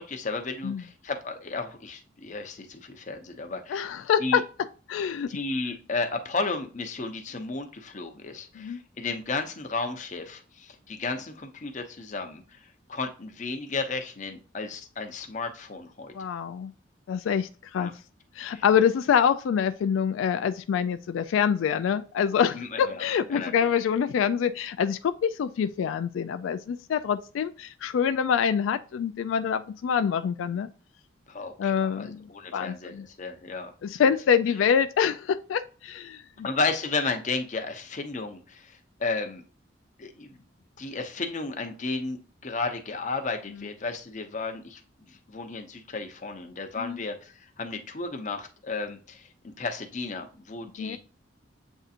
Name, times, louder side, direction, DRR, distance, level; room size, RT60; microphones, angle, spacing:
voice 1, 0.0-3.9 4.2-4.4 5.3-12.6 12.9-16.1 17.8-17.9 18.5-18.6 22.5-23.0 23.3-23.5 31.3-33.7 36.4-39.4 40.0-40.4 40.8-44.8 45.1-51.0, left 3 dB, 40° left, 0.7 m, -33 dB
voice 2, 3.7-4.4 4.9-5.3 8.6-8.8 16.1-16.7 17.1-17.9 18.4-30.7 31.6-32.2 32.5-33.0 33.8-36.2 46.8-47.0 50.8-51.0, left 7 dB, 90° left, 0.3 m, -25 dB
7.8 x 2.7 x 2.4 m
head